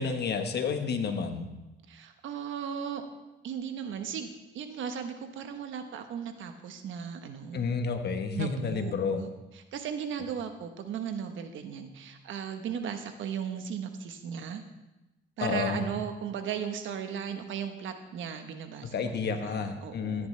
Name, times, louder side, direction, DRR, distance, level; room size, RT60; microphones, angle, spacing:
voice 1, 0.0-1.5 7.5-9.2 15.4-15.9 18.8-20.3, left 5 dB, 55° left, 6 dB, 1.3 m, -30 dB
voice 2, 1.9-3.0 3.4-7.7 8.3-9.3 9.7-14.6 15.4-20.3, right 7 dB, 75° right, 7 dB, 1.2 m, -36 dB
14.0 x 10.0 x 3.3 m, 1.0 s
cardioid pair, 90°, 20 cm